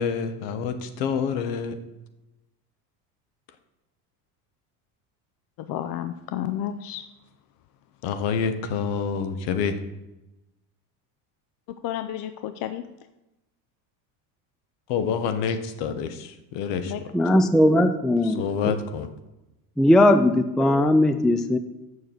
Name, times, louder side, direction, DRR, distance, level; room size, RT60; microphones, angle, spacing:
voice 1, 0.0-1.8 8.0-9.8 14.9-16.9 18.4-19.1, left 6 dB, 65° left, 9 dB, 1.3 m, -27 dB
voice 2, 5.7-7.0 11.8-12.8 16.9-17.0, left 11 dB, 50° left, 10 dB, 0.6 m, -31 dB
voice 3, 17.1-18.8 19.8-21.6, left 1 dB, ahead, 9 dB, 0.3 m, -19 dB
7.0 x 6.5 x 7.5 m, 0.97 s
supercardioid pair, 95°, 45 cm